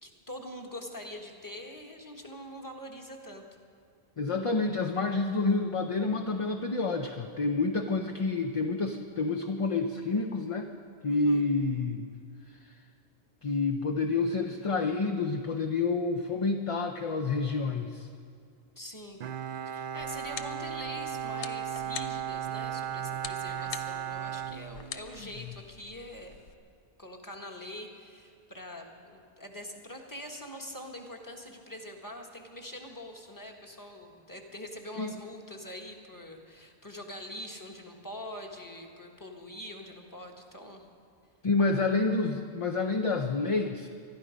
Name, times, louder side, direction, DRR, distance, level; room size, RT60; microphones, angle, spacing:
voice 1, 0.0-3.4 11.1-11.4 18.8-19.2 19.6-26.4 27.0-40.9, left 1 dB, 20° left, 2 dB, 1.5 m, -44 dB
voice 2, 4.2-10.7 11.0-12.1 12.5-12.7 13.4-18.1 25.4-25.5 35.0-35.1 41.4-43.9, left 3 dB, 35° left, 4 dB, 0.6 m, -29 dB
Bowed string instrument, 19.2-25.4, right 9 dB, 60° right, 0.7 m, -36 dB
sound 1, 20.0-26.5, left 8 dB, 80° left, 1.0 m, -46 dB
21.0 x 12.5 x 5.2 m, 2.3 s
omnidirectional pair, 1.1 m